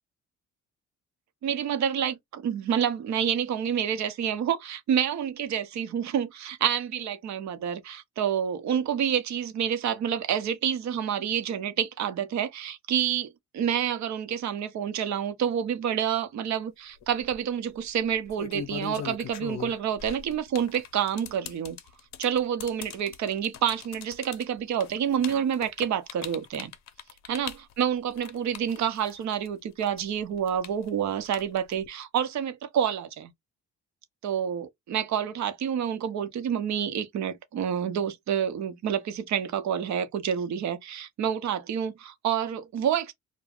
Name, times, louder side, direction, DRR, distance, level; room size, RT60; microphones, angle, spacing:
voice 1, 1.4-21.8 22.2-26.7 27.3-33.3 34.2-43.1, right 8 dB, 65° right, 0.7 m, -28 dB
sound 1, 17.0-17.4 18.1-29.5 29.8-31.9, left 9 dB, 65° left, 0.6 m, -40 dB
2.3 x 2.1 x 3.4 m
cardioid pair, 90°, 30 cm